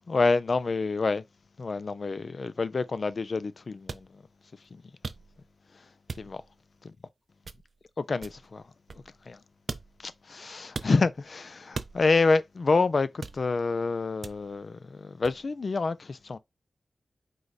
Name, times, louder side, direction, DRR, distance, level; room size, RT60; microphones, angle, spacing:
voice 1, 0.1-1.2 1.6-4.2 4.7-4.8 6.2-6.4 8.0-8.6 9.3-9.4 10.0-16.4, left 3 dB, 60° left, 0.4 m, -27 dB
sound 1, 3.9-4.1 5.0-5.5 6.1-6.5 7.4-7.8 8.2-9.3 9.7-10.1 10.7-11.0 11.7-12.3 13.2-13.7 14.2-14.6 15.2-15.4, right 4 dB, 60° right, 0.4 m, -40 dB
4.7 x 2.2 x 4.0 m
cardioid pair, 60°, 0 cm